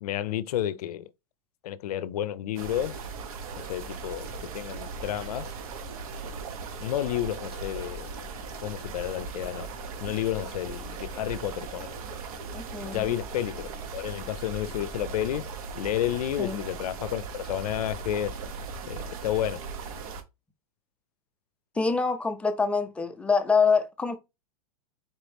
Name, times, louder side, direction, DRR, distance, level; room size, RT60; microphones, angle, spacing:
voice 1, 0.0-1.1 1.6-3.0 3.5-5.5 6.8-8.1 8.6-9.7 10.0-11.9 12.8-15.5 15.7-18.4 18.9-19.6, left 12 dB, 80° left, 0.5 m, -31 dB
sound 1, 2.5-20.2, right 4 dB, 65° right, 1.1 m, -38 dB
voice 2, 12.5-13.2 16.4-16.6 21.8-24.2, left 5 dB, 5° left, 0.5 m, -25 dB
4.4 x 3.0 x 3.4 m
supercardioid pair, 150°, 19 cm